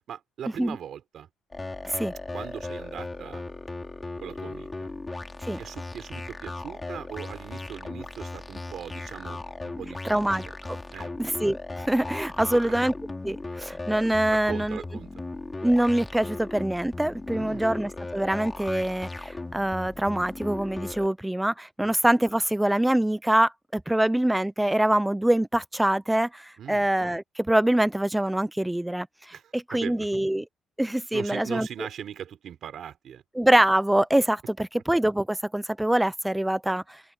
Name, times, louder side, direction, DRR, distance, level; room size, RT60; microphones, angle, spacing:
voice 1, 0.1-1.3 2.3-3.4 4.2-4.9 5.5-10.5 10.9-11.1 12.4-12.7 14.3-15.1 17.3-17.8 21.8-21.9 26.6-26.9 29.3-30.1 31.1-33.2, right 9 dB, 50° right, 4.3 m, -40 dB
sound 1, 1.5-21.1, left 2 dB, 15° left, 4.0 m, -37 dB
voice 2, 10.0-10.8 11.2-12.9 13.2-14.8 15.6-29.1 29.5-30.4 30.8-31.7 33.4-37.0, right 1 dB, 5° right, 0.5 m, -24 dB
cardioid pair, 160°, 0 cm